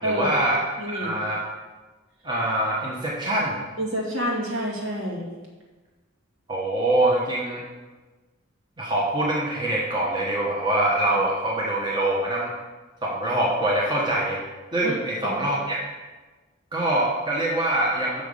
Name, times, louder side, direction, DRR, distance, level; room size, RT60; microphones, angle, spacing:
voice 1, 0.0-0.6 0.9-1.4 2.2-3.6 6.5-7.6 8.8-12.5 13.0-14.4 14.7-15.8 16.7-18.2, right 1 dB, 20° right, -4 dB, 1.2 m, -24 dB
voice 2, 0.8-1.1 3.8-5.3 14.8-14.9, equal, 70° right, -4 dB, 2.4 m, -27 dB
6.4 x 5.6 x 6.9 m, 1.3 s
head